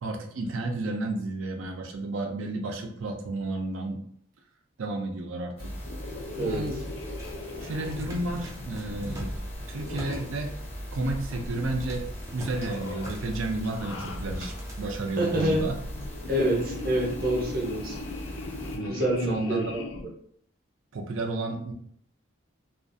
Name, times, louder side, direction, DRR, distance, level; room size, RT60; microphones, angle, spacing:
voice 1, 0.0-4.0 4.8-5.7 6.4-6.8 7.6-9.3 9.7-10.5 10.9-12.1 12.3-15.7 18.7-19.8 20.9-21.7, right 2 dB, 80° right, 4 dB, 0.4 m, -32 dB
sound 1, 5.6-18.8, equal, 30° left, 0.7 m, -40 dB
sound 2, 5.8-10.4 10.9-12.1 12.3-13.2 13.6-14.7 15.4-20.1, left 2 dB, 65° left, 0.4 m, -39 dB
sound 3, 6.3-14.9, equal, 15° right, 0.3 m, -45 dB
voice 2, 15.2-15.6 16.3-18.0 18.9-19.8, right 1 dB, 45° right, -1 dB, 0.7 m, -26 dB
2.4 x 2.3 x 2.5 m, 0.65 s
head